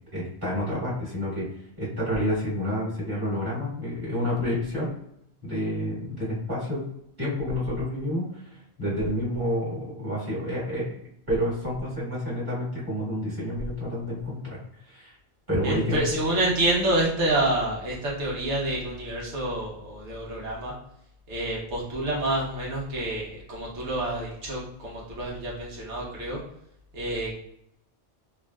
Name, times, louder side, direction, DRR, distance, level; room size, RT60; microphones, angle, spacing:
voice 1, 0.1-4.9 5.4-6.8 7.2-11.0 11.3-14.6 14.9-15.1 15.5-16.0, equal, 20° right, -9 dB, 1.5 m, -29 dB
voice 2, 15.6-20.7 21.3-26.4 26.9-27.4, right 1 dB, 85° right, -4 dB, 1.2 m, -28 dB
3.4 x 2.5 x 2.3 m, 0.75 s
omnidirectional pair, 1.1 m